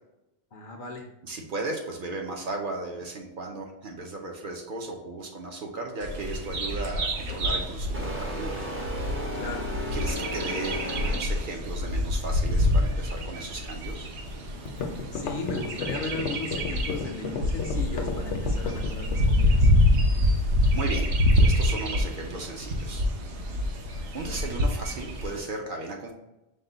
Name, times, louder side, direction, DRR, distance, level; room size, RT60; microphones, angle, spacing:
voice 1, 0.5-1.1 9.3-9.7 14.8-19.7, left 3 dB, 60° left, 3 dB, 0.6 m, -36 dB
voice 2, 1.2-8.6 9.9-14.1 20.7-23.1 23.3-23.5 24.1-26.1, right 2 dB, 55° right, 1 dB, 0.7 m, -36 dB
Bird vocalization bird call bird song, 6.0-25.4, left 1 dB, 75° right, 1.0 m, -26 dB
sound 1, 7.3-7.5 7.9-11.5, left 1 dB, 15° right, 0.4 m, -35 dB
sound 2, 14.2-14.3 14.7-19.3, left 6 dB, 80° left, 1.0 m, -32 dB
5.4 x 2.2 x 3.8 m, 0.95 s
omnidirectional pair, 1.2 m